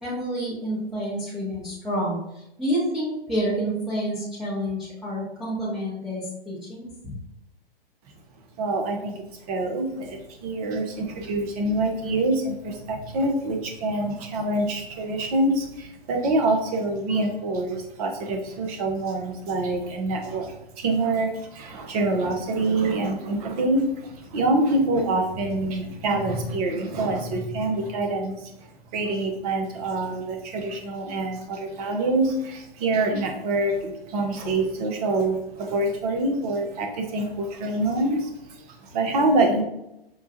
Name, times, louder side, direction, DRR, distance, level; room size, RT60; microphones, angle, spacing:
voice 1, 0.0-7.2, equal, ahead, -11 dB, 0.8 m, -29 dB
voice 2, 8.6-39.6, right 2 dB, 40° right, 3 dB, 0.8 m, -26 dB
5.4 x 2.3 x 2.7 m, 0.86 s
hypercardioid pair, 125°, 30 cm